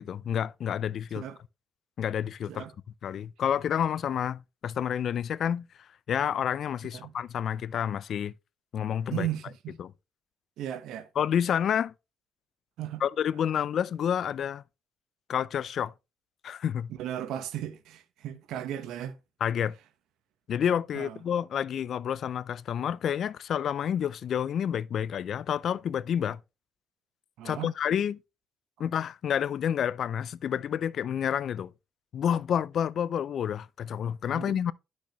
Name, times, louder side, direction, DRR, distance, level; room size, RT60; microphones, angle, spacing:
voice 1, 0.0-1.2 2.0-2.6 3.0-5.7 6.1-8.3 8.7-9.3 9.8-9.9 11.2-11.9 13.0-14.6 15.3-15.9 16.4-16.9 19.4-19.7 20.5-26.4 27.4-28.2 28.8-31.7 32.1-34.7, left 9 dB, 65° left, 0.4 m, -29 dB
voice 2, 9.1-9.8 10.6-11.1 12.8-13.0 16.9-19.2 20.9-21.2 27.4-27.7 34.3-34.6, right 11 dB, 85° right, 1.0 m, -36 dB
10.5 x 6.2 x 3.0 m
cardioid pair, 90°, 0 cm